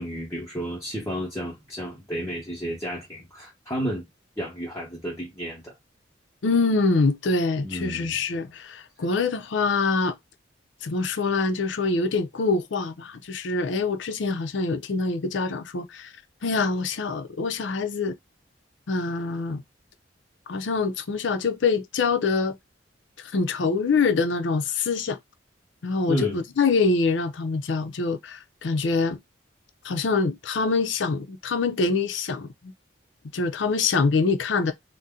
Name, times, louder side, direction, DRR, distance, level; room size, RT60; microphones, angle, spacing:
voice 1, 0.0-4.1 4.4-5.7 7.6-8.2 26.1-26.4, equal, 15° left, 0.9 m, -32 dB
voice 2, 6.4-10.1 10.8-16.1 16.4-18.1 18.9-19.6 20.5-22.6 23.3-25.2 25.8-29.2 29.8-32.7 33.3-34.7, left 4 dB, 70° left, 0.5 m, -25 dB
2.7 x 2.1 x 3.6 m
head